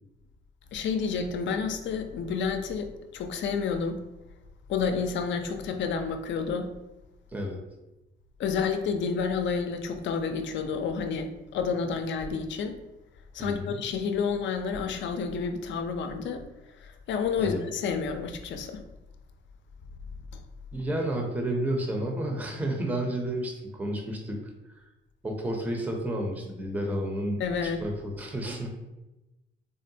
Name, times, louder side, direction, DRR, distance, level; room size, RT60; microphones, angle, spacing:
voice 1, 0.7-4.0 4.7-6.7 8.4-12.8 13.3-16.5 16.8-18.8 20.3-20.4 27.4-27.8, left 5 dB, 70° left, 7 dB, 0.4 m, -30 dB
voice 2, 13.4-13.8 17.4-17.6 20.7-24.4 25.2-28.7, right 1 dB, 10° right, 1 dB, 0.5 m, -31 dB
3.7 x 2.1 x 2.6 m, 1.0 s
cardioid pair, 90°, 20 cm